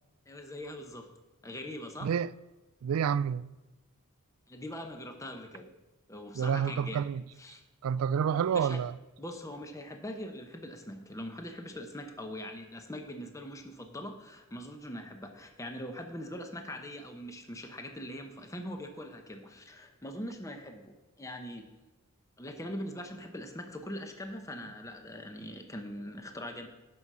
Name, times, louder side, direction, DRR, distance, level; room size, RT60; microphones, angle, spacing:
voice 1, 0.3-1.1 1.4-2.1 4.5-5.7 6.1-7.0 7.4-7.6 8.5-8.8 9.2-21.7 22.4-26.7, left 1 dB, 15° left, 0.8 m, -42 dB
voice 2, 2.8-3.5 6.4-7.2 7.8-8.9, right 7 dB, 70° right, 0.3 m, -28 dB
9.5 x 6.2 x 5.5 m
head